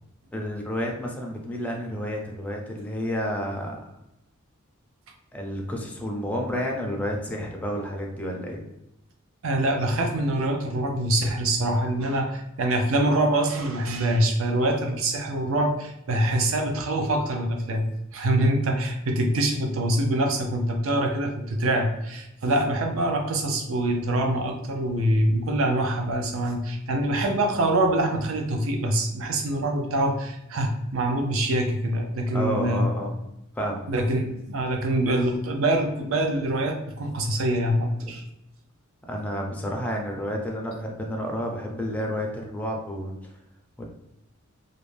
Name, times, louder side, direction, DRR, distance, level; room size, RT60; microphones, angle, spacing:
voice 1, 0.3-3.8 5.3-8.6 32.3-33.2 33.6-33.9 38.0-38.1 39.1-43.2 43.8-43.9, equal, 5° left, -1 dB, 0.4 m, -30 dB
voice 2, 9.4-32.8 33.9-38.2, right 1 dB, 70° right, 3 dB, 0.5 m, -25 dB
2.5 x 2.1 x 3.1 m, 0.86 s
head